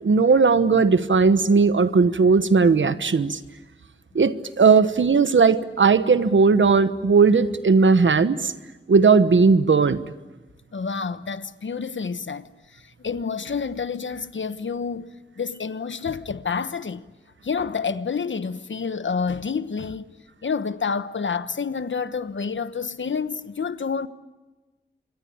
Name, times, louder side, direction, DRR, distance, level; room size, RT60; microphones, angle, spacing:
voice 1, 0.0-3.4 4.1-8.5 8.9-10.0, right 4 dB, 85° right, 1.2 m, -17 dB
voice 2, 10.7-17.0 17.4-20.1 20.4-24.1, left 5 dB, 80° left, 1.1 m, -29 dB
27.5 x 23.5 x 8.7 m
wide cardioid pair, 80°, 19 cm